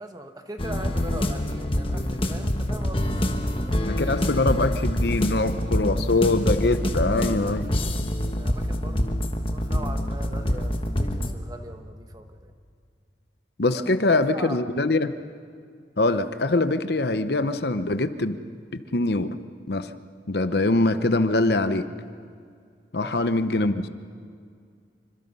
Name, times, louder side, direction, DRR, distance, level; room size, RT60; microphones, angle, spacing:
voice 1, 0.0-4.0 7.4-12.5 13.7-14.6 23.0-23.2, right 1 dB, 20° right, 5 dB, 1.5 m, -41 dB
sound 1, 0.6-11.3, left 1 dB, 30° left, 1.3 m, -26 dB
voice 2, 3.8-7.7 13.6-15.1 16.0-18.4 18.7-19.4 19.7-19.9 20.3-21.9 22.9-23.9, left 2 dB, 60° left, 11 dB, 0.8 m, -23 dB
28.0 x 25.5 x 5.5 m, 2.2 s
head